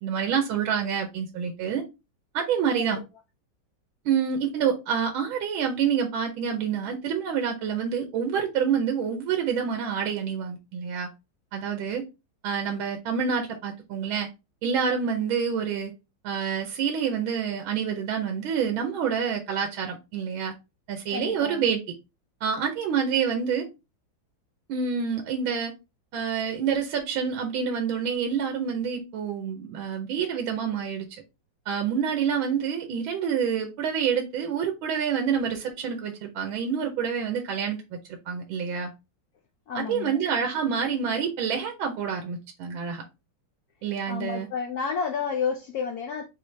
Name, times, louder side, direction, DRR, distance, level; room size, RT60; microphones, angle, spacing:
voice 1, 0.0-1.8 2.3-3.0 4.0-11.1 11.5-12.0 12.4-14.3 14.6-15.9 16.2-20.5 20.9-21.8 22.4-23.7 24.7-25.7 26.1-31.0 31.7-38.0 38.3-38.9 39.7-43.0 43.8-44.5, right 7 dB, 90° right, 1.6 m, -27 dB
voice 2, 21.1-21.7 39.7-40.2 44.1-46.3, left 6 dB, 80° left, 0.8 m, -31 dB
5.4 x 2.7 x 3.2 m
omnidirectional pair, 2.2 m